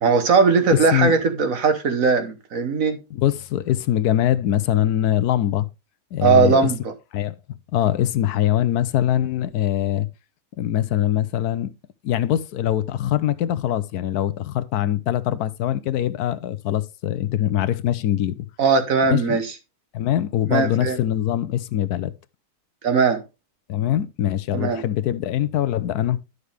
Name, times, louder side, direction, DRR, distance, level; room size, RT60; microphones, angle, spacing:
voice 1, 0.0-3.0 6.2-6.9 18.6-19.5 20.5-21.0 22.8-23.2 24.5-24.8, right 5 dB, 60° right, 1.6 m, -19 dB
voice 2, 0.7-1.1 3.1-5.7 6.1-6.7 7.1-7.4 7.7-10.1 10.6-11.7 12.0-18.5 19.1-19.4 19.9-22.1 23.7-26.2, left 12 dB, 80° left, 1.2 m, -22 dB
11.0 x 6.6 x 3.3 m
omnidirectional pair, 1.6 m